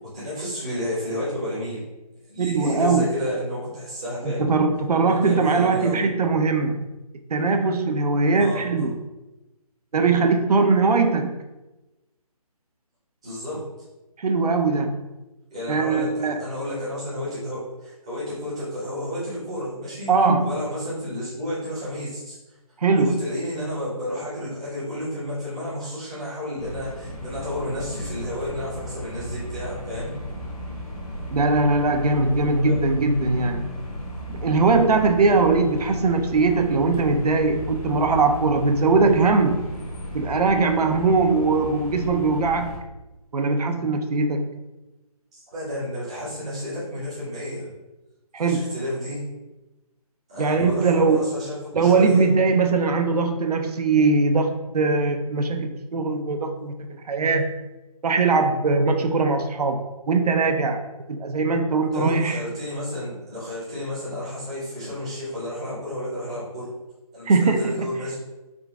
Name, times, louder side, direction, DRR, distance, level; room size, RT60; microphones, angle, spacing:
voice 1, 0.1-1.9 2.3-4.5 5.1-6.0 8.4-8.9 13.2-13.6 15.5-16.1 16.4-20.1 20.4-22.3 22.9-30.1 32.6-32.8 45.3-47.7 48.4-49.2 50.3-52.3 61.9-66.7 67.1-68.2, left 1 dB, 10° right, -11 dB, 0.5 m, -31 dB
voice 2, 2.4-3.1 4.2-6.9 7.3-9.0 9.9-11.4 14.2-15.0 15.7-16.4 20.1-20.6 22.8-23.2 31.3-33.7 34.3-39.6 40.1-42.7 43.3-44.5 48.3-48.7 50.4-51.2 51.7-56.7 57.1-57.5 58.0-60.8 61.1-62.4 67.3-68.0, right 3 dB, 85° right, 5 dB, 0.5 m, -21 dB
sound 1, 26.6-42.8, equal, 75° left, 1.0 m, -35 dB
3.7 x 2.3 x 3.4 m, 1.1 s
hypercardioid pair, 170°, 19 cm